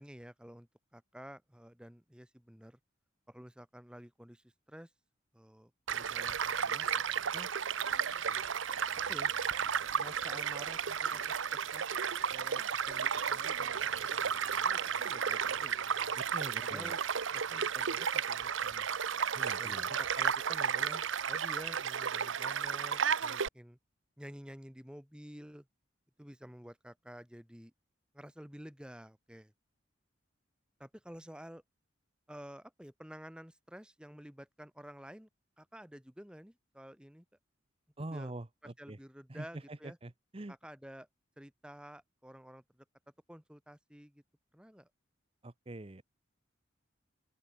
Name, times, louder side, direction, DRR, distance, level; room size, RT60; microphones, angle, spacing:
voice 1, 0.0-2.8 3.3-4.9 5.3-6.9 7.1-7.5 8.2-8.5 8.9-9.3 9.9-11.9 12.3-15.9 16.6-17.0 17.3-18.9 19.6-23.8 24.2-25.7 26.2-27.7 28.1-29.5 30.8-31.6 32.3-35.3 35.6-37.3 38.0-38.3 38.6-40.0 40.5-41.1 41.4-42.9 43.3-44.2 44.5-44.9, equal, 5° right, 1.8 m, -51 dB
Child speech kid speaking / Stream / Car passing by, 5.9-23.5, right 7 dB, 85° right, 0.9 m, -33 dB
voice 2, 16.3-16.9 19.3-19.9 38.0-39.0 39.3-40.5 45.4-46.0, right 2 dB, 30° right, 0.8 m, -44 dB
open air
head